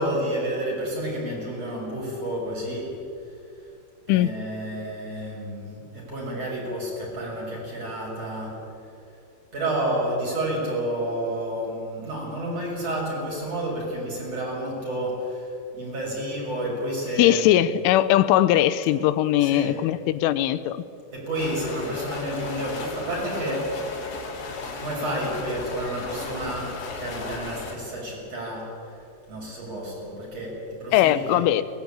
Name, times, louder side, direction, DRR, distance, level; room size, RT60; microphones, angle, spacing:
voice 1, 0.0-3.7 4.1-8.6 9.5-17.4 19.4-19.8 21.1-24.3 24.7-31.4, right 1 dB, 30° right, -3 dB, 7.7 m, -30 dB
voice 2, 17.2-20.8 30.9-31.6, left 13 dB, 90° left, 14 dB, 3.2 m, -20 dB
sound 1, 21.3-27.7, left 3 dB, 65° left, 5.5 m, -36 dB
22.5 x 20.5 x 8.9 m, 2.6 s
omnidirectional pair, 5.5 m